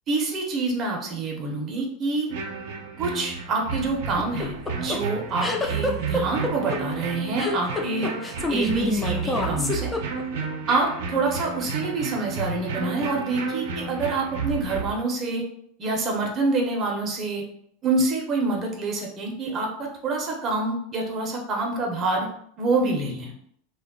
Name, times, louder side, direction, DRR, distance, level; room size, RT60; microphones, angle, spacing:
voice 1, 0.1-2.3 3.0-8.1 8.5-9.9 10.7-15.4 15.8-17.4 17.8-19.7 20.0-22.3 22.6-23.3, right 3 dB, 30° right, 0 dB, 0.6 m, -26 dB
sound 1, 2.3-15.0, right 5 dB, 75° right, 0.5 m, -32 dB
sound 2, 4.2-10.5, left 2 dB, 10° left, 0.3 m, -27 dB
2.2 x 2.0 x 3.5 m, 0.68 s
supercardioid pair, 140°, 0 cm